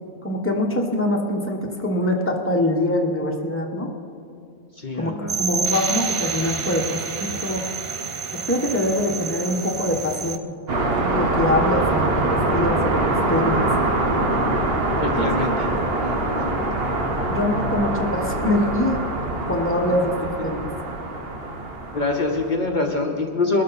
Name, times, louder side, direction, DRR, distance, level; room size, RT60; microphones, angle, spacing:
voice 1, 0.2-3.9 5.0-7.6 8.5-10.4 11.1-13.6 15.2-15.3 17.3-19.0 19.5-20.1 20.4-20.6, left 1 dB, 10° left, 0 dB, 1.3 m, -24 dB
voice 2, 4.7-5.4 14.9-15.7 16.0-16.6 21.5-21.6 21.9-23.6, left 3 dB, 50° left, 1 dB, 1.1 m, -25 dB
sound 1, 5.3-10.4, right 6 dB, 40° right, 0.5 m, -28 dB
sound 2, 10.7-22.5, right 2 dB, 65° right, 1.4 m, -24 dB
21.5 x 13.0 x 4.2 m, 2.4 s
omnidirectional pair, 1.1 m